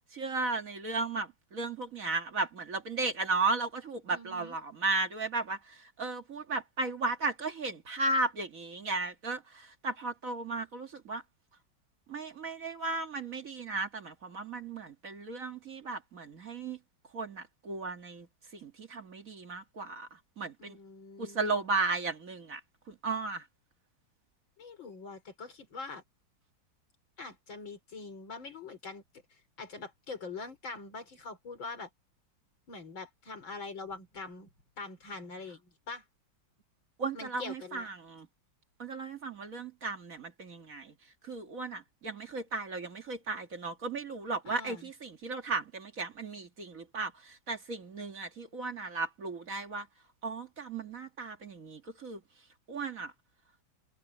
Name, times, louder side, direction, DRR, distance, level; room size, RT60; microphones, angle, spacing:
voice 1, 0.1-11.2 12.1-16.8 17.1-18.3 18.5-20.8 21.2-22.6 22.9-23.5 37.0-38.3 38.8-40.9 41.2-49.9 50.2-52.2 52.7-53.1, right 3 dB, 45° right, 2.0 m, -35 dB
voice 2, 4.1-4.6 20.6-21.7 24.6-26.0 27.2-29.0 29.6-31.9 32.7-34.5 34.8-36.0 37.1-37.9 44.5-44.9, left 3 dB, 80° left, 5.4 m, -43 dB
omnidirectional pair, 2.1 m